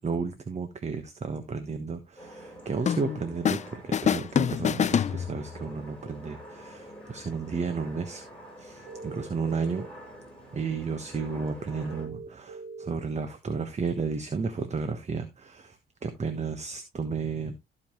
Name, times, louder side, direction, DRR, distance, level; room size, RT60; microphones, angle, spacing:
voice 1, 0.0-8.2 8.6-9.9 10.5-15.8 16.0-17.5, right 5 dB, 35° right, 9 dB, 1.2 m, -33 dB
sound 1, 2.2-12.1, equal, 5° left, 5.5 m, -47 dB
sound 2, 2.9-3.7 3.9-5.7, left 8 dB, 35° left, 0.4 m, -26 dB
sound 3, 8.9-9.9 11.9-12.9, right 4 dB, 90° right, 2.2 m, -42 dB
14.5 x 5.4 x 3.1 m, 0.22 s
cardioid pair, 90°, 20 cm